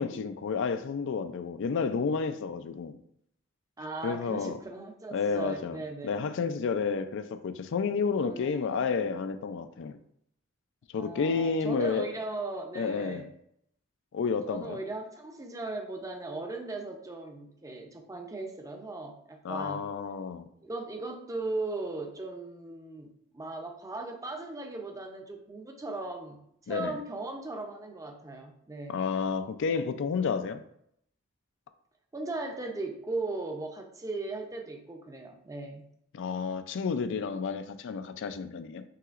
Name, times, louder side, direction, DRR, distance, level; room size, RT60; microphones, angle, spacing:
voice 1, 0.0-3.0 4.0-4.6 5.1-10.0 10.9-12.1 12.8-13.2 14.1-14.8 19.4-20.5 26.7-27.0 28.9-30.6 36.1-38.8, left 5 dB, 60° left, 0.4 m, -31 dB
voice 2, 3.8-6.2 8.2-8.9 10.9-13.3 14.5-19.9 20.6-26.4 26.7-29.0 32.1-35.8, right 2 dB, 15° right, 0.5 m, -38 dB
5.7 x 2.9 x 2.4 m
head